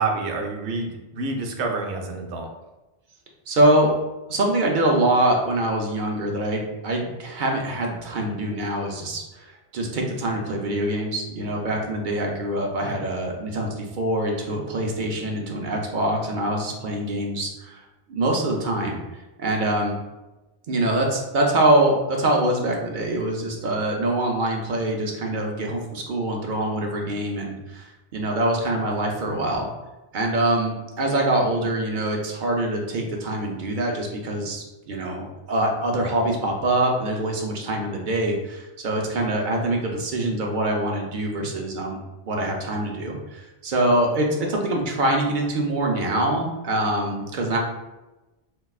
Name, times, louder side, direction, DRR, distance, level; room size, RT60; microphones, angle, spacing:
voice 1, 0.0-2.5, right 3 dB, 80° right, 2 dB, 0.9 m, -28 dB
voice 2, 3.5-3.9 4.3-17.8 18.1-19.0 19.4-20.0 20.7-29.7 30.1-42.0 42.3-47.6, right 1 dB, 55° right, 0 dB, 0.6 m, -24 dB
4.4 x 2.2 x 2.3 m, 1.1 s
omnidirectional pair, 1.2 m